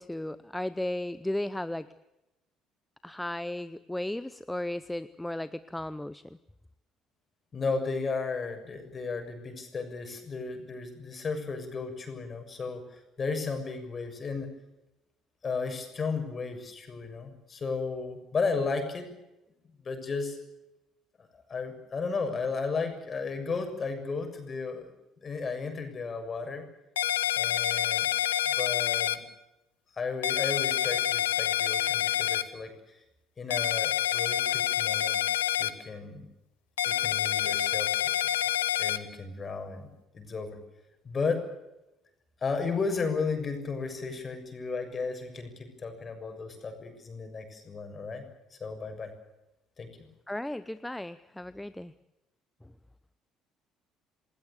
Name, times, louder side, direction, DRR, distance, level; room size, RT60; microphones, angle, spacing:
voice 1, 0.0-1.9 3.0-6.2 50.3-51.9, left 1 dB, 5° left, 15 dB, 0.8 m, -35 dB
voice 2, 7.5-14.5 15.4-19.1 19.8-20.4 21.5-24.9 25.2-26.6 27.3-28.1 28.5-29.2 29.9-33.0 33.4-35.2 35.6-36.3 36.8-38.2 38.8-39.9 40.1-40.6 41.0-41.4 42.4-48.2 48.5-49.1 49.8-50.1, left 4 dB, 35° left, 6 dB, 6.8 m, -34 dB
sound 1, 27.0-29.2 30.2-32.4 33.5-35.7 36.8-39.0, left 12 dB, 75° left, 1.0 m, -27 dB
28.5 x 20.0 x 7.0 m, 0.94 s
figure-of-eight pair, 50°, 0 cm